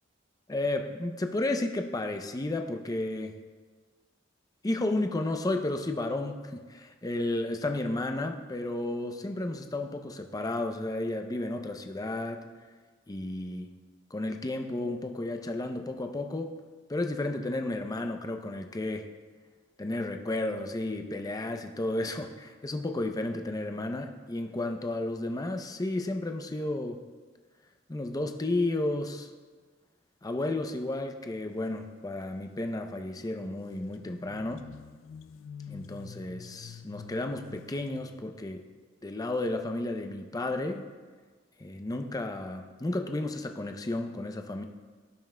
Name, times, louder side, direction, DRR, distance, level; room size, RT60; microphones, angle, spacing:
voice 1, 0.5-3.3 4.6-12.4 13.1-13.8 14.1-16.5 16.9-19.1 19.8-27.0 27.9-29.3 30.2-34.7 35.7-38.6 39.0-40.9 41.6-44.6, left 2 dB, 20° left, 5 dB, 0.5 m, -32 dB
sound 1, 33.2-33.3 33.5-38.2, left 7 dB, 80° left, 0.3 m, -48 dB
17.0 x 5.8 x 2.2 m, 1.4 s
head